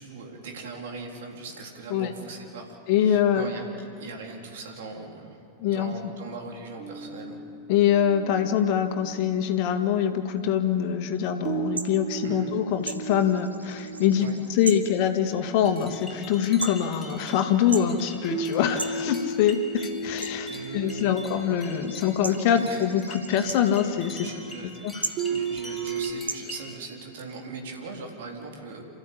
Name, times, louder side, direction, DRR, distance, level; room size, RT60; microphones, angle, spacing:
voice 1, 0.0-5.4 5.7-7.4 12.2-12.5 14.2-14.3 20.4-21.1 22.5-22.9 24.2-24.7 25.3-28.8, right 4 dB, 55° right, 1 dB, 4.0 m, -40 dB
voice 2, 2.9-3.5 5.6-6.0 7.7-24.3 24.6-25.0, left 9 dB, 45° left, 7 dB, 1.9 m, -24 dB
sound 1, 6.8-10.0 11.4-16.9 18.3-23.8 25.2-26.1, right 4 dB, 35° right, 3.2 m, -36 dB
sound 2, 11.5-26.4, right 3 dB, 80° right, 1.3 m, -40 dB
sound 3, 15.3-26.8, left 1 dB, 5° left, 3.2 m, -45 dB
27.5 x 15.0 x 8.6 m, 2.6 s
figure-of-eight pair, 90°, 0 cm